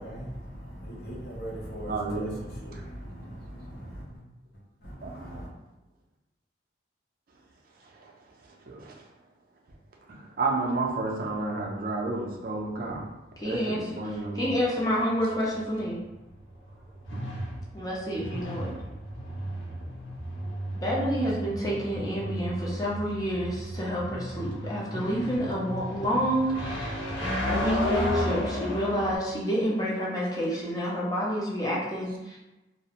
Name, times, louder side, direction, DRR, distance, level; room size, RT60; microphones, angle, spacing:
voice 1, 0.0-4.0 4.8-5.5, equal, 55° left, -4 dB, 0.7 m, -39 dB
voice 2, 1.9-2.3 2.7-2.8 5.0-5.3 8.0-8.1 8.7-8.9 10.1-13.1 13.4-14.8 17.1-17.2, right 3 dB, 50° right, 0 dB, 0.4 m, -31 dB
voice 3, 13.4-14.0 14.4-16.0 17.7-18.7 20.7-27.0 27.5-32.4, equal, 20° left, -5 dB, 0.5 m, -29 dB
sound 1, 14.7-29.2, equal, 85° left, 0.9 m, -33 dB
2.4 x 2.0 x 2.8 m, 1.0 s
head